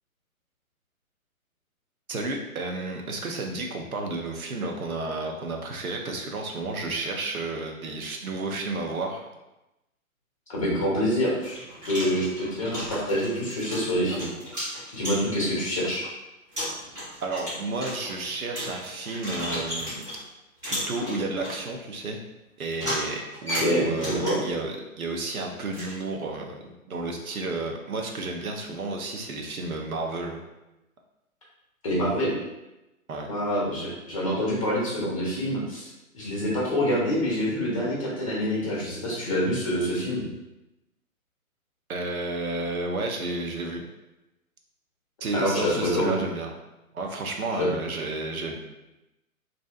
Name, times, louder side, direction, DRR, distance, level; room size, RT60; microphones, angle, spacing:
voice 1, 2.1-9.3 17.2-20.1 20.6-22.2 22.6-26.6 26.9-30.4 33.1-33.3 41.9-43.8 45.2-46.5 46.9-48.6, right 3 dB, 80° right, 2 dB, 0.6 m, -31 dB
voice 2, 10.5-14.3 14.9-16.0 23.5-24.4 31.8-32.3 33.3-35.9 36.1-40.2 45.3-46.1 47.6-47.7, equal, 25° left, -5 dB, 0.5 m, -26 dB
sound 1, 10.7-10.9 11.4-15.5 16.0-16.1 16.5-20.2 20.6-21.6 22.7-24.6 25.7-25.9, equal, 10° right, 0.8 m, -34 dB
2.6 x 2.1 x 2.4 m, 0.96 s
figure-of-eight pair, 125°, 43 cm